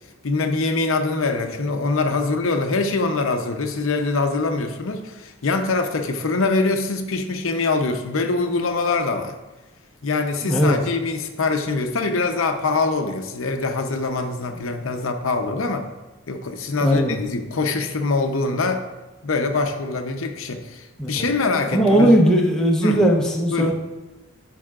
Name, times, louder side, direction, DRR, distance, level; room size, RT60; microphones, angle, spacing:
voice 1, 0.2-9.3 10.0-15.9 16.3-18.9 19.2-22.2 22.8-23.0 23.5-23.7, left 3 dB, 65° left, 5 dB, 0.7 m, -23 dB
voice 2, 10.4-10.8 16.8-17.2 21.0-21.1 21.7-23.7, right 1 dB, 5° left, -2 dB, 0.9 m, -18 dB
13.0 x 5.7 x 2.4 m, 1.1 s
head